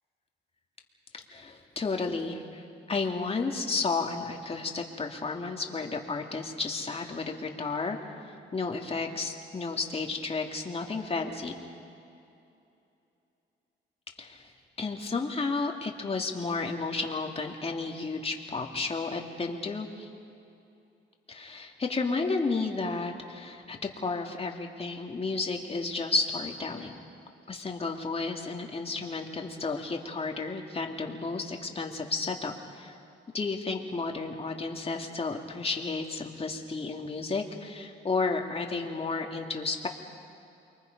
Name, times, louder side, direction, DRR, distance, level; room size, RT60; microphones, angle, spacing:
voice 1, 1.3-2.6 2.9-8.0 8.2-11.5 14.2-14.4 14.8-20.1 21.3-27.0 27.5-32.9 33.3-39.9, left 3 dB, 30° left, 2 dB, 2.5 m, -32 dB
29.0 x 23.0 x 5.4 m, 2.7 s
cardioid pair, 90°, 20 cm